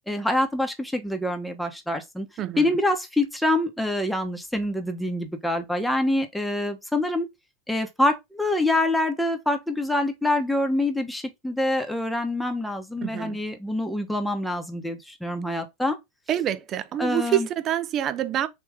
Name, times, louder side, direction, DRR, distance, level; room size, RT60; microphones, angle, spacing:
voice 1, 0.1-2.3 2.6-7.3 7.7-16.0 17.0-17.5, left 1 dB, 5° left, 1.0 m, -26 dB
voice 2, 13.0-13.4 16.3-18.5, right 11 dB, 40° right, 0.6 m, -26 dB
3.5 x 3.1 x 4.7 m
hypercardioid pair, 90°, 0 cm